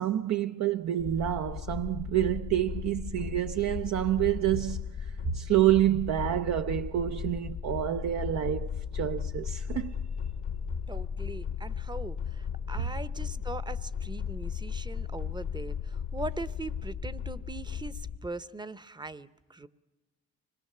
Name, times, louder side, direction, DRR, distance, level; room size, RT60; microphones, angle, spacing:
voice 1, 0.0-10.0, right 12 dB, 60° right, 0.6 m, -28 dB
sound 1, 1.0-18.2, left 7 dB, 75° left, 1.1 m, -36 dB
voice 2, 10.9-19.7, right 3 dB, 15° right, 0.8 m, -41 dB
25.0 x 20.5 x 6.7 m
cardioid pair, 90°, 30 cm